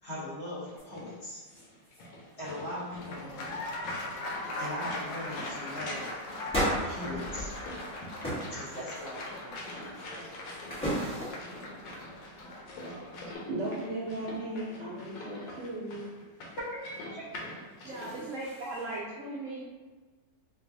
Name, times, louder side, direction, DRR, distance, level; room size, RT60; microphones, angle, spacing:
voice 1, 0.0-1.4 2.4-3.6 4.6-6.1 6.8-7.5 8.5-9.9 16.6-17.2, left 1 dB, 45° left, -9 dB, 1.1 m, -40 dB
sound 1, 0.7-18.1, left 1 dB, 90° left, 1.4 m, -46 dB
sound 2, 0.8-0.9 1.2-2.0 2.3-2.6 3.0-3.5 4.1-4.2 4.5-4.7 5.2-5.4 6.5-7.9 8.2-8.5 8.9-9.4 10.0-11.6 17.6-19.0, equal, 5° left, 0.9 m, -36 dB
Applause, 2.9-13.3, left 1 dB, 70° left, 0.7 m, -40 dB
voice 2, 12.8-16.1, right 1 dB, 55° right, -10 dB, 0.8 m, -37 dB
voice 3, 17.8-19.6, right 2 dB, 85° right, -4 dB, 0.7 m, -38 dB
4.6 x 2.3 x 2.6 m, 1.3 s
omnidirectional pair, 1.9 m